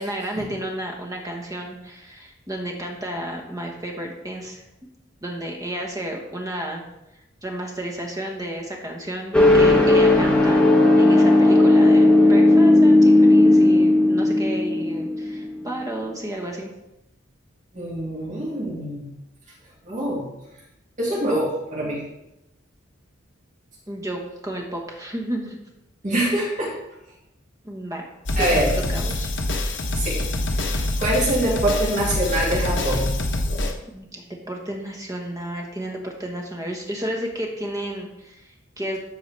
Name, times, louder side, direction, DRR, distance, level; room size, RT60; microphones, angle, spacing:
voice 1, 0.0-4.6 5.2-6.8 7.4-10.6 11.0-16.7 23.9-25.6 27.6-28.1 28.4-28.5 28.9-29.3 33.9-39.0, right 1 dB, 20° right, 1 dB, 1.3 m, -32 dB
sound 1, 9.3-15.7, left 2 dB, 5° left, 1.1 m, -15 dB
voice 2, 17.7-19.0 19.9-20.3 21.0-22.0 26.0-26.7 28.4-28.7 30.0-30.2 31.0-33.1, right 1 dB, 40° right, -6 dB, 2.2 m, -24 dB
sound 2, 28.3-33.7, left 1 dB, 65° left, 1.0 m, -25 dB
13.0 x 4.6 x 3.4 m, 0.89 s
head